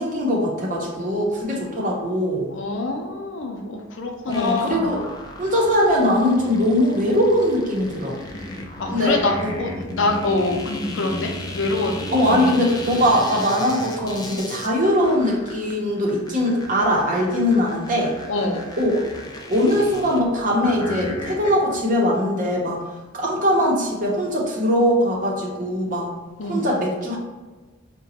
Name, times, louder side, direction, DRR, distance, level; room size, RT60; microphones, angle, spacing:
voice 1, 0.0-2.5 4.3-5.0 5.4-8.1 8.9-9.5 12.1-18.1 18.8-18.9 19.5-22.8 23.1-26.1 26.4-27.2, equal, 45° right, -2 dB, 0.8 m, -21 dB
voice 2, 2.5-4.9 8.8-12.4 18.3-18.6 26.4-26.6, left 2 dB, 70° left, 2 dB, 0.6 m, -25 dB
sound 1, 4.3-21.8, left 1 dB, 20° left, 0.4 m, -35 dB
4.8 x 2.2 x 2.8 m, 1.3 s
head